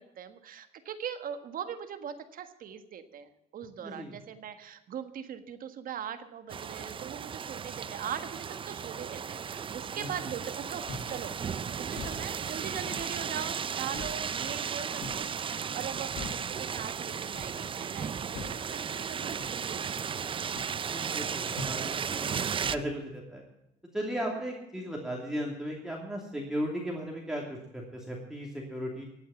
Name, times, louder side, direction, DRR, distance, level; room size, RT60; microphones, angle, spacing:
voice 1, 0.0-11.3 11.7-20.4, right 8 dB, 55° right, 9 dB, 1.5 m, -41 dB
voice 2, 3.8-4.1 10.0-10.1 19.1-19.2 20.8-22.3 22.7-23.4 23.9-29.0, equal, 5° right, -2 dB, 2.7 m, -36 dB
sound 1, 6.5-22.8, right 7 dB, 30° right, 0.5 m, -35 dB
sound 2, 10.9-11.2 11.9-12.2 12.9-13.1 13.9-14.2 15.0-15.3 16.2-16.5 17.3-17.6 18.3-18.6 19.4-19.6 20.6-20.7 21.6-21.8 22.6-22.9, left 3 dB, 75° left, 1.9 m, -41 dB
15.5 x 8.6 x 6.9 m, 0.85 s
cardioid pair, 110°, 17 cm